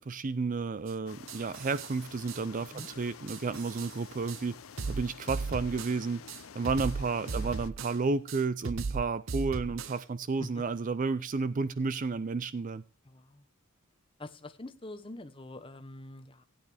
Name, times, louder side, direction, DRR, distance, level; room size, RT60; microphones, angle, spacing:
voice 1, 0.0-4.5 4.9-6.2 6.5-12.8, right 4 dB, 40° right, 0.4 m, -32 dB
sound 1, 0.9-1.0 1.3-1.9 2.3-2.4 2.8-2.9 3.3-3.9 4.3-4.4 4.8-6.0 6.3-8.0 8.3-10.0, right 4 dB, 65° right, 0.8 m, -37 dB
sound 2, 1.1-7.7, left 6 dB, 75° left, 0.7 m, -49 dB
voice 2, 9.4-9.7 10.4-10.6 13.0-13.5 14.2-16.4, left 1 dB, 25° left, 0.9 m, -45 dB
16.0 x 8.9 x 3.3 m
head